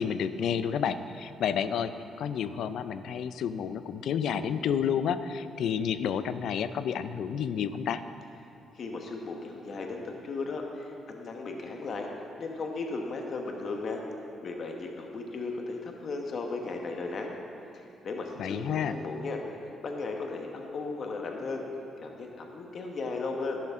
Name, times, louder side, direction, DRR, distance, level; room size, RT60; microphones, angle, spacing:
voice 1, 0.0-1.9 2.2-8.0 18.4-19.0, left 8 dB, 75° left, 12 dB, 0.4 m, -30 dB
voice 2, 8.7-12.1 12.4-14.0 14.4-17.4 17.7-21.6 22.0-23.6, left 3 dB, 55° left, 2 dB, 1.2 m, -36 dB
11.5 x 11.0 x 3.7 m, 2.7 s
cardioid pair, 90°, 0 cm